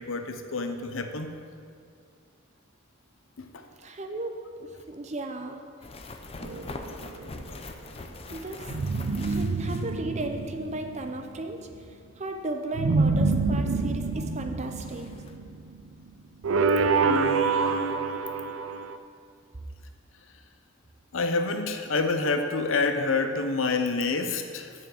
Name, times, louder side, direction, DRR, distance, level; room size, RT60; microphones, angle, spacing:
voice 1, 0.0-1.3 3.4-3.7 17.0-18.1 21.1-24.7, left 3 dB, 75° left, 7 dB, 0.7 m, -28 dB
voice 2, 3.8-5.6 8.3-8.7 9.2-15.1, right 2 dB, 35° right, 5 dB, 0.7 m, -35 dB
sound 1, 5.8-10.5 10.7-10.8 13.8-13.9 14.3-14.4 14.7-15.3, left 2 dB, 30° left, 0.5 m, -42 dB
sound 2, 6.4-7.4 8.7-11.3 12.7-15.9 16.4-19.0, right 4 dB, 90° right, 0.5 m, -27 dB
7.2 x 5.9 x 7.7 m, 2.2 s
head